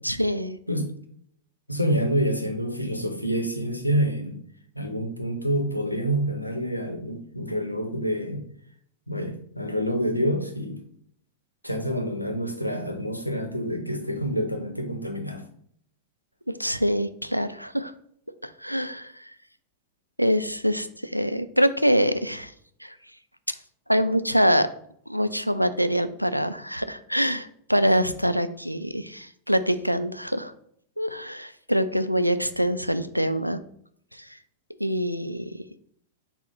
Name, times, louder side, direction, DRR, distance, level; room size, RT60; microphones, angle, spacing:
voice 1, 0.0-0.6 16.5-17.9 18.4-19.2 20.2-22.5 22.8-22.9 23.9-24.7 25.1-30.5 31.0-33.6 34.2-34.3 34.8-35.5, equal, 90° right, 11 dB, 0.3 m, -25 dB
voice 2, 1.7-4.4 4.8-8.5 9.1-10.8 11.6-15.4, equal, 90° left, 5 dB, 0.7 m, -27 dB
6.0 x 2.1 x 3.9 m, 0.66 s
figure-of-eight pair, 90°, 0 cm